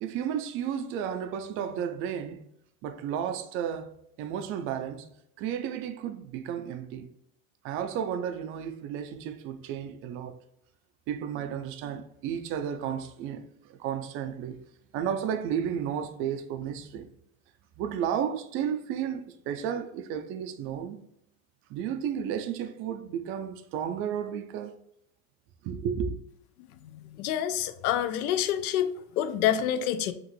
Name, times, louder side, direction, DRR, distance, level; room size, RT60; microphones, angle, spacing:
voice 1, 0.0-2.4 2.8-5.1 5.4-7.1 7.6-10.4 11.1-13.5 13.7-14.6 14.9-17.1 17.8-21.0 21.7-24.7 25.6-26.2, right 8 dB, 35° right, 0.4 m, -33 dB
voice 2, 26.9-30.1, left 10 dB, 85° left, 0.6 m, -27 dB
5.8 x 2.5 x 3.1 m
supercardioid pair, 140°, 42 cm